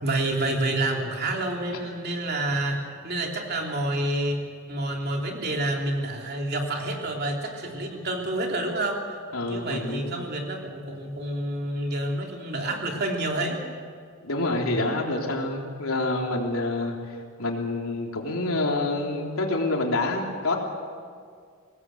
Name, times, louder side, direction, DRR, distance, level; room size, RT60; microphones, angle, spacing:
voice 1, 0.0-4.4 4.7-9.2 9.5-13.6, right 1 dB, 45° right, 1 dB, 3.2 m, -28 dB
voice 2, 9.3-10.2 14.2-17.0 17.4-20.6, left 2 dB, 75° left, 0 dB, 3.5 m, -27 dB
23.5 x 19.0 x 8.1 m, 2.1 s
head